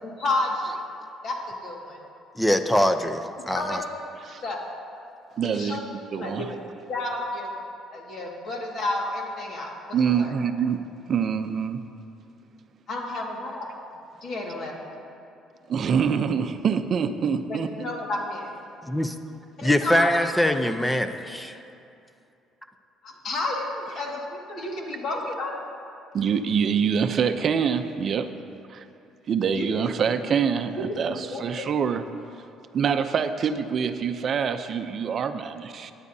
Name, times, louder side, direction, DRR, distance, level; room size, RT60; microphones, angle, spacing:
voice 1, 0.0-0.8 1.2-2.0 3.5-3.8 4.4-4.6 5.4-5.8 6.1-6.6 6.9-7.5 7.9-10.3 12.9-13.7 14.2-14.7 17.5-18.5 19.6-20.1 20.7-20.9 23.0-25.6 29.5-29.7 31.1-31.7, left 2 dB, 55° left, -1 dB, 1.9 m, -31 dB
voice 2, 2.4-3.8 18.8-19.1 19.6-21.6, left 1 dB, 5° left, 8 dB, 0.6 m, -23 dB
voice 3, 5.4-5.8 6.1-6.5 9.9-10.8 11.1-11.8 15.7-17.9 26.1-28.3 28.7-28.8 29.3-32.0 32.7-35.9, right 7 dB, 45° right, 9 dB, 0.6 m, -25 dB
17.5 x 9.7 x 2.7 m, 2.7 s
cardioid pair, 115°, 0 cm